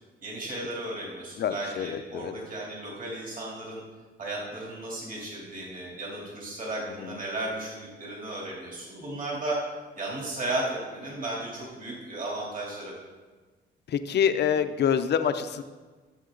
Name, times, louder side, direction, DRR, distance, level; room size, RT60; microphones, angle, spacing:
voice 1, 0.2-3.8 4.2-9.7 9.9-12.9, right 2 dB, 40° right, -4 dB, 3.3 m, -34 dB
voice 2, 1.4-2.3 7.0-7.2 13.9-15.6, left 8 dB, 60° left, 10 dB, 0.7 m, -26 dB
14.5 x 7.4 x 3.9 m, 1.4 s
cardioid pair, 90°, 20 cm